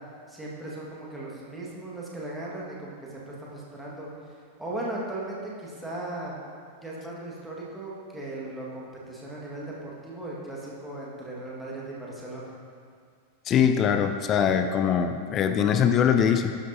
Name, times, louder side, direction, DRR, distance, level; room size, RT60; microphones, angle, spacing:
voice 1, 0.3-6.4 6.8-12.5, right 2 dB, 5° right, -5 dB, 1.6 m, -37 dB
voice 2, 13.5-16.5, left 8 dB, 30° left, 7 dB, 0.4 m, -22 dB
12.5 x 5.1 x 2.7 m, 2.1 s
figure-of-eight pair, 90°, 0 cm